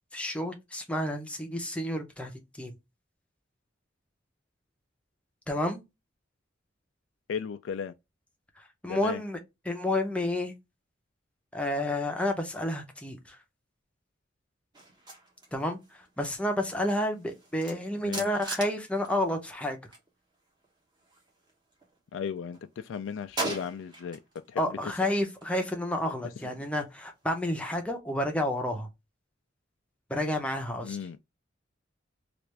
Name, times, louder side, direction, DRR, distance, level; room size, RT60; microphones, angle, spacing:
voice 1, 0.1-2.7 5.5-5.8 8.6-9.4 9.6-10.5 11.5-13.4 15.5-19.8 24.6-28.9 30.1-31.0, left 1 dB, 5° left, 0.7 m, -30 dB
voice 2, 7.3-7.9 8.9-9.2 18.0-18.2 22.1-24.2 24.5-24.6 30.8-31.2, left 6 dB, 90° left, 0.3 m, -35 dB
sound 1, 14.7-20.1 20.3-22.0 22.4-24.5 24.8-27.6, right 2 dB, 25° right, 1.1 m, -42 dB
3.3 x 2.5 x 3.1 m
head